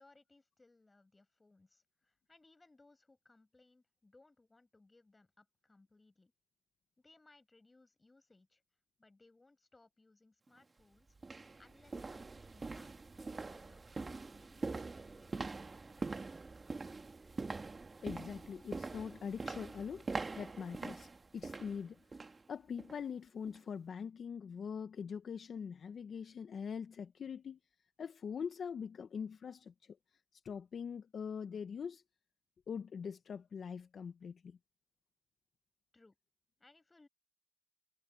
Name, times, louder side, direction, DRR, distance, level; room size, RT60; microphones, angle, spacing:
voice 1, 0.0-6.3 7.0-8.6 9.0-16.2 35.9-36.2 36.6-37.1, left 2 dB, 25° left, 6.2 m, -66 dB
sound 1, 10.5-10.6 11.2-22.4 22.8-23.0 23.5-23.6, right 3 dB, 35° right, 1.8 m, -44 dB
voice 2, 18.0-22.2 22.5-27.6 28.0-30.0 30.3-32.0 32.7-34.6, left 6 dB, 60° left, 1.2 m, -43 dB
cardioid pair, 65°, 0 cm